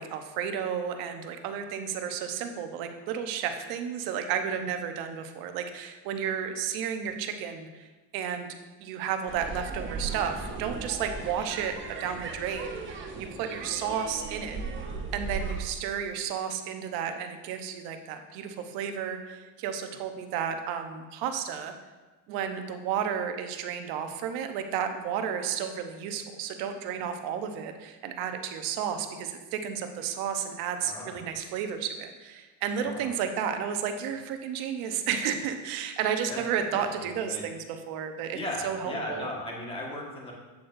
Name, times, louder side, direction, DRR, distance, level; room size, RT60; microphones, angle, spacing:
voice 1, 0.0-8.5 8.8-14.6 15.1-21.7 22.3-38.4 38.6-39.3, right 8 dB, 75° right, 6 dB, 0.9 m, -32 dB
sound 1, 9.3-15.6, right 4 dB, 30° right, 0.9 m, -37 dB
voice 2, 30.8-31.3 32.8-33.1 36.3-36.4 37.0-37.4 38.3-40.3, left 1 dB, 15° left, -2 dB, 1.5 m, -37 dB
8.5 x 7.7 x 2.6 m, 1.2 s
cardioid pair, 150°, 37 cm